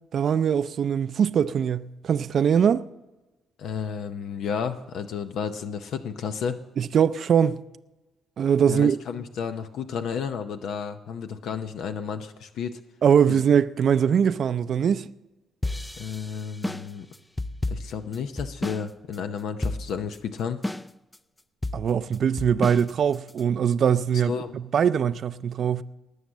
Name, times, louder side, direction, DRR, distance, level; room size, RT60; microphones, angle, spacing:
voice 1, 0.1-2.9 6.8-7.6 8.4-9.0 13.0-15.1 21.7-25.8, right 8 dB, 60° right, 0.5 m, -22 dB
voice 2, 3.6-6.6 8.7-12.8 13.3-13.4 16.0-17.1 17.7-20.6 24.3-24.6, left 6 dB, 75° left, 0.7 m, -32 dB
sound 1, 15.6-18.9 19.1-19.2 19.6-20.2 20.6-21.2 21.6-23.4, left 2 dB, 10° left, 0.4 m, -31 dB
19.0 x 6.5 x 7.3 m
cardioid pair, 90°, 0 cm